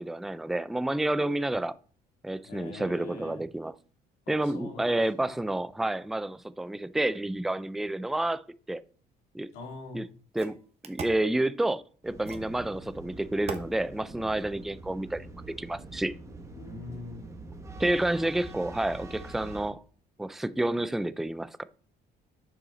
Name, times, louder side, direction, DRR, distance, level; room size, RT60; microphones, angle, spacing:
voice 1, 0.0-1.8 2.2-3.7 4.3-8.4 8.7-8.8 9.3-9.5 9.9-10.1 10.3-10.6 10.8-15.3 15.6-16.1 17.8-19.8 20.2-21.6, right 1 dB, ahead, 0.3 m, -29 dB
voice 2, 2.4-3.4 4.3-5.4 9.5-10.0 16.5-17.3, left 3 dB, 90° left, 2.9 m, -43 dB
sound 1, 9.6-9.7 10.4-11.3 12.3-12.6 13.5-13.7, right 6 dB, 40° right, 1.2 m, -39 dB
sound 2, 12.0-19.7, right 2 dB, 15° right, 1.3 m, -44 dB
6.9 x 5.7 x 4.0 m
cardioid pair, 110°, 17 cm